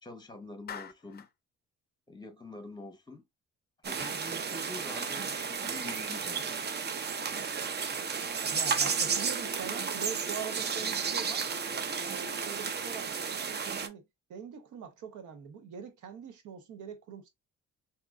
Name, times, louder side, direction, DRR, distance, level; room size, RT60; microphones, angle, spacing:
voice 1, 0.0-1.3 2.1-3.2 3.8-6.5, left 2 dB, 15° left, 1.0 m, -46 dB
Clapping, 0.7-1.4, left 7 dB, 35° left, 0.5 m, -43 dB
sound 1, 3.8-13.9, right 6 dB, 35° right, 0.5 m, -33 dB
voice 2, 8.5-11.5 11.9-14.0 14.3-17.3, right 7 dB, 80° right, 1.0 m, -43 dB
3.5 x 3.0 x 2.4 m
cardioid pair, 90°, 30 cm